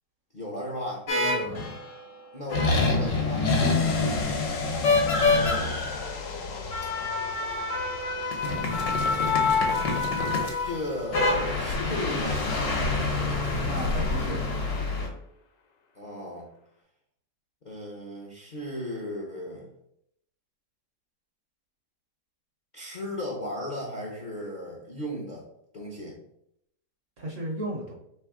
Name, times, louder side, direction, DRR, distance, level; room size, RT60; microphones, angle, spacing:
voice 1, 0.3-1.1 2.3-3.5 4.9-5.7 10.6-12.5 15.9-16.5 17.6-19.7 22.7-25.4 25.7-26.2, left 1 dB, 40° left, -2 dB, 0.6 m, -35 dB
sound 1, 1.1-1.9 2.5-15.1, left 3 dB, 65° left, 1.5 m, -26 dB
voice 2, 1.1-1.6 3.5-3.8 13.7-14.4 27.2-27.9, right 1 dB, 55° right, 0 dB, 1.0 m, -34 dB
sound 2, 3.5-12.9 13.2-13.3, left 5 dB, 80° left, 1.4 m, -38 dB
3.3 x 3.2 x 4.7 m, 0.76 s
omnidirectional pair, 1.8 m